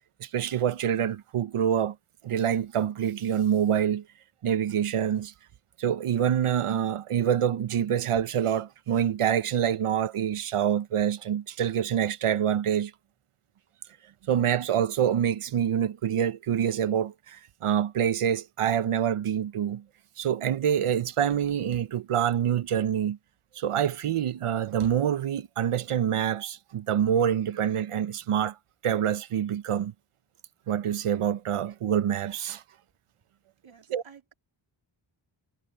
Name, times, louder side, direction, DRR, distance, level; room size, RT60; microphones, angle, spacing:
voice 1, 0.2-1.9 2.2-4.0 4.4-5.3 5.8-12.9 14.3-19.8 20.2-23.2 23.6-28.6 28.8-29.9 30.7-32.6 33.9-34.0, right 9 dB, 85° right, 0.8 m, -26 dB
voice 2, 33.6-34.3, right 6 dB, 65° right, 3.5 m, -53 dB
wide cardioid pair, 125°, 50 cm